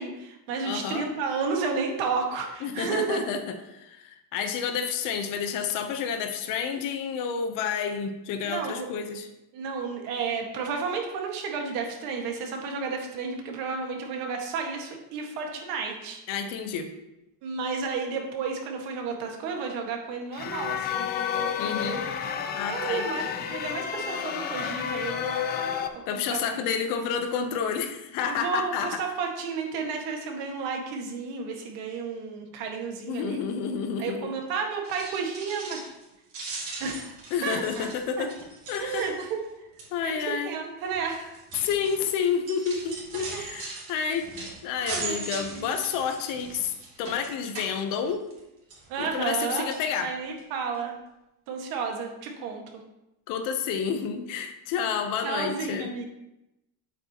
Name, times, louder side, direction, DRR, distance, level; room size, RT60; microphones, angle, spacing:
voice 1, 0.0-3.2 8.4-8.9 9.5-16.2 17.4-21.1 22.7-23.2 23.5-25.4 26.1-26.4 28.3-33.4 34.0-35.8 36.8-37.2 37.4-37.9 38.2-38.3 38.8-39.4 40.0-40.2 40.5-41.3 43.1-43.4 44.8-45.8 48.9-49.7 50.0-50.9 51.5-52.6 55.2-56.0, right 5 dB, 60° right, 2 dB, 1.8 m, -32 dB
voice 2, 0.6-1.1 2.6-9.3 16.3-16.9 21.6-22.0 22.5-23.1 26.1-29.0 33.1-34.4 37.3-38.4 38.7-39.1 39.9-40.6 41.5-44.3 44.6-46.7 47.0-48.3 49.0-50.1 53.3-55.9, left 7 dB, 55° left, 7 dB, 0.9 m, -30 dB
sound 1, 20.3-25.9, left 8 dB, 25° left, 0.5 m, -30 dB
sound 2, 34.7-36.0 36.3-39.4 39.8-40.1 40.9-48.4 48.7-49.4 49.7-49.9 50.4-50.5 50.7-50.8, right 3 dB, 35° right, 2.6 m, -40 dB
9.6 x 8.0 x 3.0 m, 0.92 s
cardioid pair, 170°, 40 cm